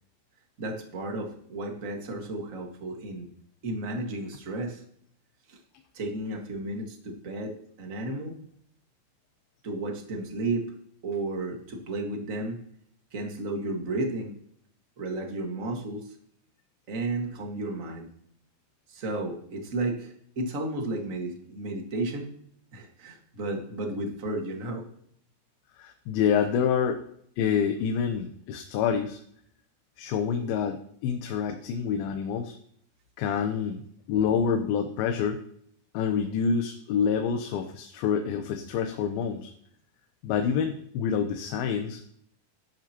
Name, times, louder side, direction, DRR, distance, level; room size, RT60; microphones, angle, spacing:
voice 1, 0.6-3.3 3.6-4.8 5.5-5.6 5.9-8.3 9.6-10.7 11.0-12.6 13.1-14.4 15.0-16.1 16.9-18.1 18.9-22.3 22.7-24.8, right 2 dB, 40° right, 2 dB, 1.1 m, -33 dB
voice 2, 25.8-27.0 27.4-29.2 30.0-32.6 33.2-33.8 34.1-35.4 35.9-39.5 40.2-42.0, left 7 dB, 85° left, 6 dB, 2.7 m, -27 dB
14.5 x 12.0 x 2.9 m, 0.66 s
omnidirectional pair, 4.3 m